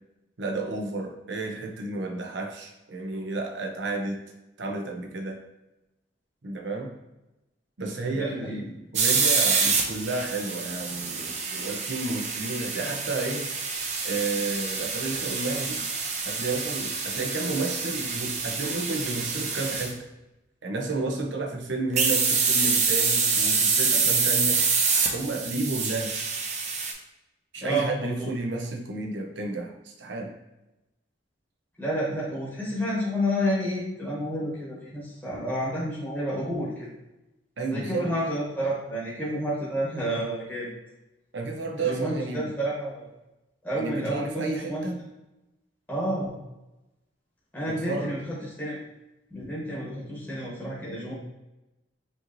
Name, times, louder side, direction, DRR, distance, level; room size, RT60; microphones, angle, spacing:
voice 1, 0.4-4.2 4.6-5.4 6.4-6.9 7.8-13.5 14.0-15.9 16.2-20.0 20.6-24.6 25.1-26.3 27.5-30.3 37.6-38.1 41.3-42.5 43.7-45.0 47.7-48.2, right 3 dB, 75° right, 1 dB, 0.7 m, -32 dB
voice 2, 8.1-8.6 27.6-28.3 31.8-36.9 37.7-40.7 41.8-43.1 43.6-44.9 45.9-46.4 47.5-48.8 49.3-51.1, equal, 10° left, -7 dB, 1.1 m, -30 dB
sound 1, 9.0-19.9 21.9-26.9, right 5 dB, 40° right, 0.5 m, -26 dB
5.3 x 3.1 x 2.6 m, 0.97 s
head